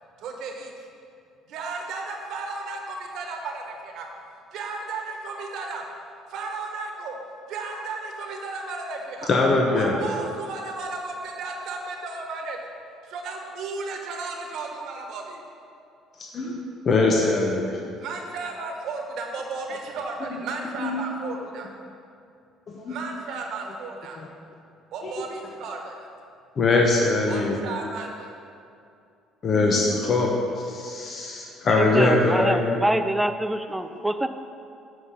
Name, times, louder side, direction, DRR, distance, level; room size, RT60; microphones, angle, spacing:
voice 1, 0.2-0.7 1.5-4.1 4.5-5.8 6.3-7.2 7.5-9.3 9.8-12.6 13.0-15.4 18.0-21.7 22.9-24.2 24.9-25.9 27.3-28.3, right 3 dB, 70° right, 2 dB, 1.2 m, -34 dB
voice 2, 9.3-10.0 16.3-16.6 16.8-17.8 20.8-21.0 22.7-23.0 25.0-25.1 26.6-27.6 29.4-32.8, left 3 dB, 45° left, 0 dB, 0.9 m, -22 dB
voice 3, 31.8-34.3, right 1 dB, 5° right, 9 dB, 0.4 m, -25 dB
7.8 x 4.9 x 5.5 m, 2.5 s
cardioid pair, 95°, 0 cm